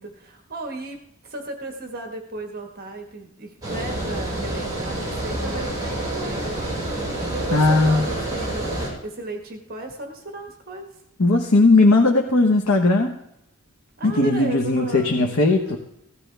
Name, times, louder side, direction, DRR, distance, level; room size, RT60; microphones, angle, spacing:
voice 1, 0.0-6.8 7.3-8.7 9.0-10.9 14.0-15.8, right 2 dB, 45° right, 3 dB, 1.5 m, -35 dB
Water, 3.6-8.9, right 1 dB, 20° right, 5.4 m, -28 dB
voice 2, 7.5-8.0 11.2-13.2 14.0-15.8, left 2 dB, 90° left, 2 dB, 1.2 m, -18 dB
16.5 x 12.5 x 3.4 m, 0.79 s
head